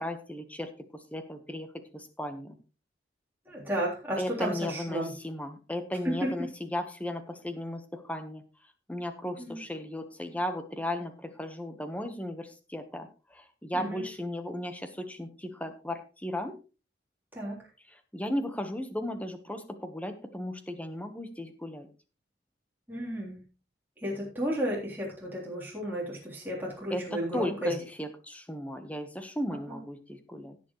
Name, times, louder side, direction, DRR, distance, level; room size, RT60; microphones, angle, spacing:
voice 1, 0.0-2.6 4.2-8.4 8.9-16.6 18.1-21.9 26.9-30.6, left 1 dB, 10° left, 8 dB, 1.2 m, -36 dB
voice 2, 3.5-5.1 6.0-6.5 9.4-9.6 13.7-14.1 17.3-17.6 22.9-23.4 24.0-27.7 29.7-29.8, right 1 dB, 10° right, -5 dB, 3.5 m, -33 dB
17.0 x 7.2 x 3.1 m, 0.33 s
head